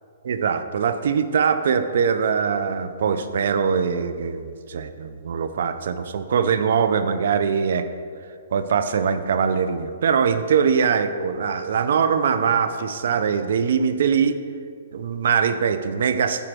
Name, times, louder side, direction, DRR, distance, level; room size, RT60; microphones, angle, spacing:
voice 1, 0.2-7.9 8.5-14.4 14.9-16.5, right 6 dB, 65° right, 10 dB, 0.6 m, -22 dB
9.1 x 4.5 x 6.2 m, 2.2 s
hypercardioid pair, 155°, 0 cm